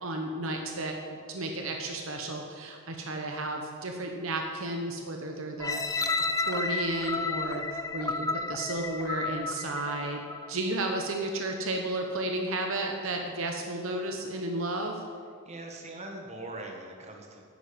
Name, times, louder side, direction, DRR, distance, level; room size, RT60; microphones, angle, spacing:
voice 1, 0.0-6.1 6.3-10.2 10.5-14.9, right 2 dB, 65° right, 2 dB, 0.9 m, -33 dB
sound 1, 5.6-10.5 11.1-11.2, left 3 dB, 15° left, 0.4 m, -32 dB
voice 2, 15.4-17.4, right 2 dB, 30° right, 1 dB, 1.3 m, -41 dB
10.5 x 8.9 x 5.2 m, 2.1 s
head